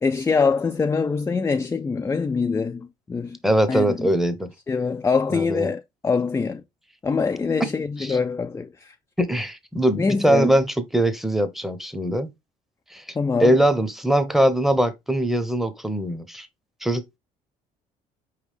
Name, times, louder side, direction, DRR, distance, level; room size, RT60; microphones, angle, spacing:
voice 1, 0.0-3.4 3.7-4.1 4.7-6.6 7.0-8.9 9.9-10.5 13.2-13.6, left 4 dB, 15° left, 0.3 m, -24 dB
voice 2, 3.4-4.5 5.3-5.7 8.0-8.2 9.2-12.3 12.9-13.0 13.4-16.5 16.8-17.2, right 1 dB, ahead, 0.8 m, -22 dB
4.9 x 3.2 x 3.2 m
hypercardioid pair, 65°, 18 cm